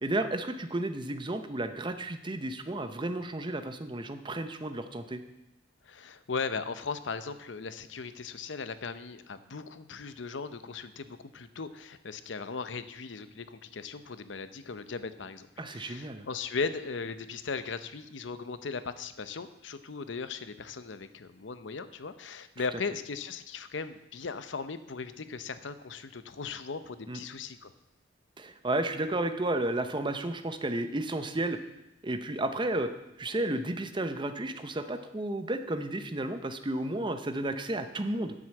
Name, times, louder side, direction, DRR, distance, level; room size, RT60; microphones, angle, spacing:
voice 1, 0.0-5.2 15.6-16.2 27.1-27.2 28.4-31.6 32.0-32.9 33.2-38.3, right 2 dB, 25° right, 9 dB, 0.7 m, -32 dB
voice 2, 5.8-27.7, left 4 dB, 70° left, 12 dB, 0.7 m, -38 dB
9.6 x 7.7 x 7.6 m, 0.92 s
head